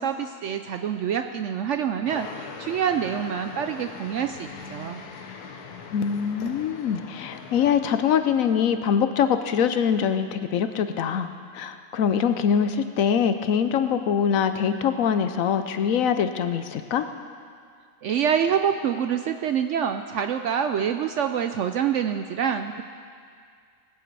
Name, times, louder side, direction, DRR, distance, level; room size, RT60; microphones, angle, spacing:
voice 1, 0.0-5.0 18.0-22.8, right 8 dB, 70° right, 7 dB, 0.7 m, -26 dB
sound 1, 2.1-7.7, left 5 dB, 85° left, 1.5 m, -40 dB
voice 2, 5.9-17.1, left 7 dB, 65° left, 9 dB, 1.0 m, -23 dB
19.0 x 9.5 x 4.6 m, 2.2 s
omnidirectional pair, 1.6 m